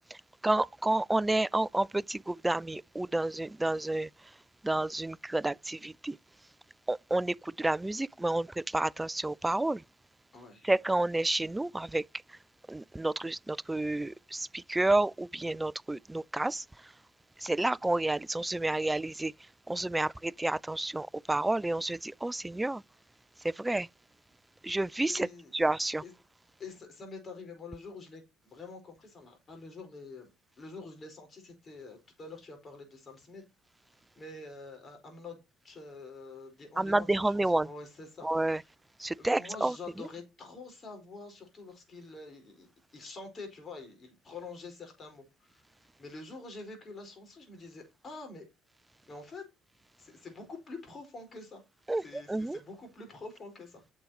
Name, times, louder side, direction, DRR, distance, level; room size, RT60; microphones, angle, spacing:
voice 1, 0.4-4.3 4.6-6.2 6.9-9.8 10.6-12.4 12.7-16.9 17.4-19.3 19.7-22.8 23.4-23.9 24.6-26.0 36.8-37.7 38.2-38.6 39.0-39.8 51.9-52.6, right 2 dB, 10° right, 0.3 m, -30 dB
voice 2, 10.3-10.7 25.0-25.5 26.0-26.1 26.6-33.4 34.1-35.4 35.6-38.3 39.2-42.7 42.9-45.6 46.0-48.5 49.1-49.4 50.0-51.6 52.0-53.8, left 3 dB, 40° left, 4.5 m, -46 dB
9.4 x 6.5 x 3.0 m
supercardioid pair, 80°, 0 cm